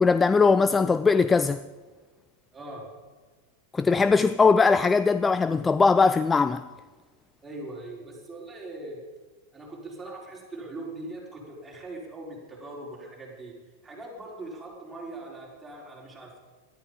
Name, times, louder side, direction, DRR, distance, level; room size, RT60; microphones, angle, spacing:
voice 1, 0.0-1.6 3.7-6.7, left 4 dB, 15° left, 0.4 m, -20 dB
voice 2, 2.5-2.9 7.4-9.0 9.5-13.5 13.8-16.4, right 2 dB, 10° right, 5.0 m, -41 dB
19.0 x 12.5 x 5.3 m
figure-of-eight pair, 90°, 0 cm